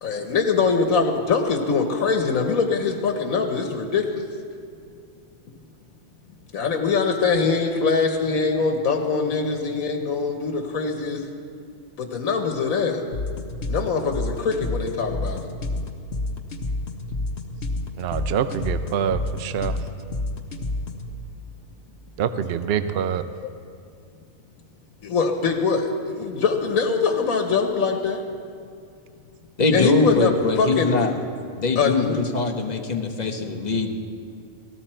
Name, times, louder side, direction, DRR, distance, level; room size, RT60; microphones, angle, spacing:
voice 1, 0.0-4.3 6.5-11.3 12.0-13.1 13.7-15.5 25.0-28.2 29.7-30.3 30.6-31.1 31.8-32.2, left 5 dB, 85° left, 3 dB, 1.5 m, -23 dB
sound 1, 13.1-21.1, left 2 dB, 55° left, 1.3 m, -29 dB
voice 2, 18.0-19.8 22.2-23.2, right 8 dB, 55° right, 11 dB, 0.7 m, -25 dB
voice 3, 29.6-31.1 31.6-33.9, left 3 dB, 35° left, 4 dB, 1.1 m, -22 dB
18.5 x 15.0 x 4.4 m, 2.4 s
omnidirectional pair, 1.4 m